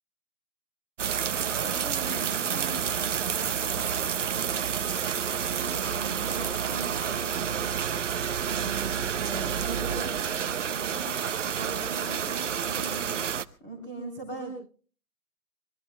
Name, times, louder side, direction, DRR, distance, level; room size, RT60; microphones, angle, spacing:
sound 1, 1.0-13.4, right 8 dB, 55° right, 0.8 m, -29 dB
voice 1, 1.5-5.0 5.5-7.6 8.5-11.1 11.5-13.1 13.6-14.5, right 3 dB, 10° left, 0 dB, 3.3 m, -40 dB
27.0 x 22.5 x 2.2 m, 0.41 s
hypercardioid pair, 180°, 43 cm